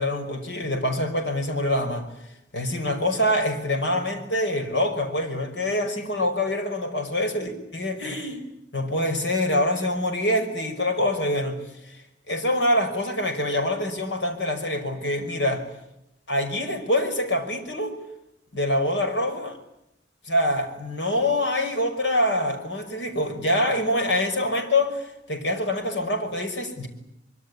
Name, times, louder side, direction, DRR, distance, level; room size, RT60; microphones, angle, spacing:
voice 1, 0.0-2.1 2.5-8.4 8.7-11.6 11.9-15.7 16.3-18.0 18.5-19.6 20.3-26.9, left 1 dB, 80° left, 5.5 m, -25 dB
25.0 x 23.5 x 9.9 m
head